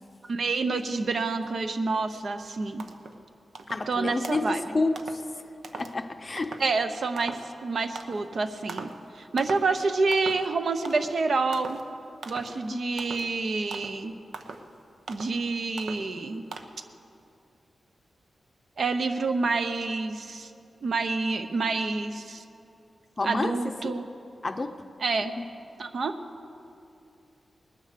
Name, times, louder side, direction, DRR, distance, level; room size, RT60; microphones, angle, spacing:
voice 1, 0.3-2.8 3.9-4.8 6.6-11.8 12.3-14.1 15.1-16.4 18.8-20.5 20.8-22.4 23.2-24.1 25.0-25.3 25.8-26.2, right 3 dB, 60° right, 8 dB, 0.8 m, -28 dB
sound 1, 2.4-2.5 2.8-3.2 3.5-3.9 4.2-4.6 5.0-5.2 5.6-5.9 6.4-6.7 7.2-7.5 8.0-8.3 8.7-9.0 9.4-9.7 10.1-10.5 10.8-11.2 11.5-11.8 12.2-12.6 13.0-13.3 13.7-14.0 14.3-14.7 15.1-15.4 15.8-16.1 16.5-16.6, right 4 dB, 85° right, 0.9 m, -40 dB
voice 2, 3.7-5.1 5.7-6.6 12.7-12.8 23.2-23.5 23.8-24.0 24.4-24.8 25.4-25.5, left 3 dB, 30° left, 8 dB, 0.6 m, -29 dB
20.0 x 9.9 x 6.8 m, 2.7 s
wide cardioid pair, 150°, 0 cm